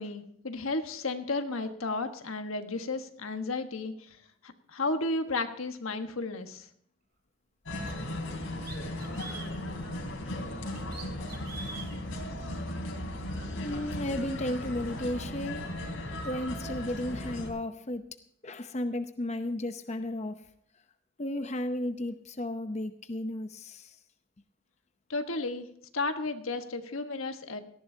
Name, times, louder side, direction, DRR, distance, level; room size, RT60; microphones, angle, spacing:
voice 1, 0.0-4.2 4.4-6.7 25.1-25.7 25.9-27.6, left 3 dB, 90° left, 7 dB, 1.4 m, -33 dB
sound 1, 7.7-17.5, left 1 dB, 75° left, 3.4 m, -36 dB
sound 2, 7.9-8.0 8.6-9.6 10.7-11.9, right 5 dB, 50° right, 3.0 m, -44 dB
voice 2, 13.5-15.6 16.2-18.0 18.4-20.3 21.2-23.9, left 1 dB, 35° left, 8 dB, 0.7 m, -34 dB
18.0 x 14.0 x 2.8 m, 0.68 s
head